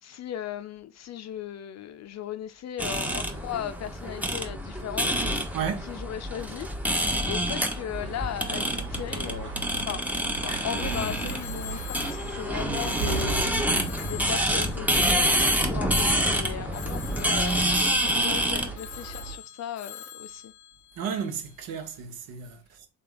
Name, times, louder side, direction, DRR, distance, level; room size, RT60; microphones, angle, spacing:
voice 1, 0.0-5.5 5.8-6.7 7.3-9.5 9.9-10.0 10.4-13.5 14.0-17.7 18.1-20.5, left 10 dB, 40° left, 0.6 m, -37 dB
sound 1, 2.8-18.7, equal, 5° right, 1.0 m, -27 dB
voice 2, 5.5-5.9 21.0-22.9, right 7 dB, 55° right, 1.2 m, -33 dB
sound 2, 7.9-19.4, right 4 dB, 85° right, 2.5 m, -38 dB
Telephone, 10.7-16.0 16.7-21.6, left 9 dB, 85° left, 0.7 m, -43 dB
3.6 x 3.3 x 3.9 m
hypercardioid pair, 55°, 42 cm